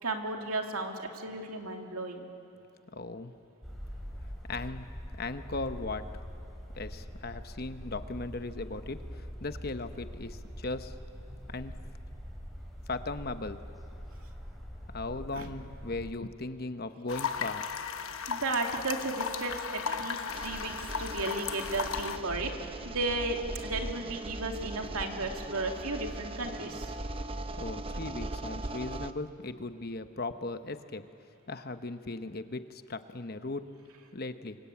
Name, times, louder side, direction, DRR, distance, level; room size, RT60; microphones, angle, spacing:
voice 1, 0.0-2.3 15.3-15.4 18.3-26.9, right 2 dB, 80° right, 3 dB, 2.6 m, -34 dB
voice 2, 2.9-3.3 4.5-4.9 5.2-6.0 6.7-10.9 11.5-11.7 12.9-13.6 14.9-17.7 27.1-27.3 27.6-31.0 31.5-33.6 34.1-34.6, left 2 dB, 45° left, 9 dB, 1.0 m, -38 dB
sound 1, 3.6-16.1, equal, ahead, 2.9 m, -43 dB
sound 2, 17.1-22.2, left 6 dB, 70° left, 1.1 m, -35 dB
sound 3, 20.3-29.1, right 2 dB, 25° right, 0.7 m, -39 dB
27.5 x 24.0 x 8.5 m, 2.7 s
head